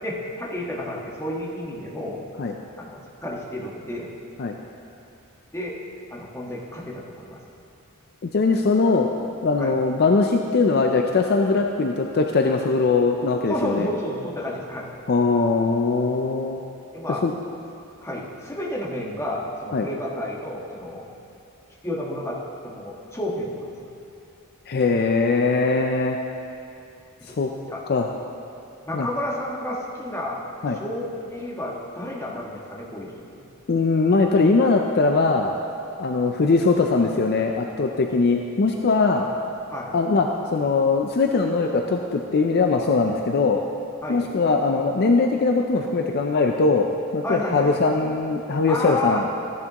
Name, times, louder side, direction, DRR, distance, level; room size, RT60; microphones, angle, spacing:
voice 1, 0.0-2.3 2.8-4.1 5.5-5.7 6.1-7.4 9.6-9.7 13.5-14.9 16.9-17.2 18.0-21.1 21.8-23.7 27.3-27.4 27.7-27.8 28.8-30.4 30.7-33.1 33.4-33.5 39.1-39.3 39.7-39.9 44.0-44.3 47.2-47.7 48.7-49.2, left 1 dB, 15° left, -4 dB, 1.4 m, -31 dB
voice 2, 8.2-9.1 9.4-13.9 15.1-16.6 17.2-17.3 19.7-19.9 24.7-26.2 27.3-27.5 27.9-28.1 28.9-29.1 30.6-30.8 33.7-35.5 36.0-39.3 39.9-43.6 44.1-46.9 47.1-49.2, left 3 dB, 45° left, 3 dB, 0.5 m, -21 dB
14.5 x 10.5 x 3.0 m, 2.6 s
head